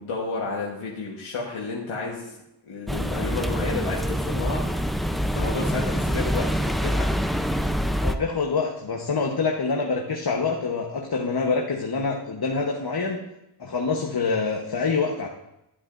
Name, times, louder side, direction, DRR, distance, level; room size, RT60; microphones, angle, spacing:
voice 1, 0.0-2.3 2.6-4.7 5.3-7.1, left 3 dB, 90° left, -4 dB, 1.4 m, -31 dB
sound 1, 2.9-8.1, equal, ahead, 0.6 m, -25 dB
voice 2, 8.0-13.2 13.6-15.3, left 4 dB, 50° left, 0 dB, 1.2 m, -26 dB
12.0 x 8.6 x 2.6 m, 0.87 s
cardioid pair, 50°, 48 cm